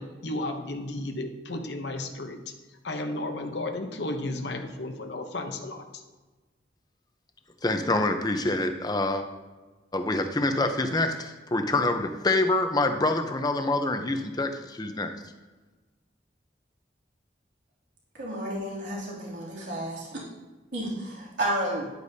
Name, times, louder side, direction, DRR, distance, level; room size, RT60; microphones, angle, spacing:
voice 1, 0.0-2.4 2.8-6.0, left 2 dB, 65° left, 4 dB, 0.8 m, -33 dB
voice 2, 7.6-9.2 9.9-15.1, left 2 dB, 20° left, 6 dB, 0.7 m, -26 dB
voice 3, 18.2-20.1 20.7-21.9, right 1 dB, 80° right, -6 dB, 2.8 m, -31 dB
10.5 x 8.1 x 2.8 m, 1.3 s
head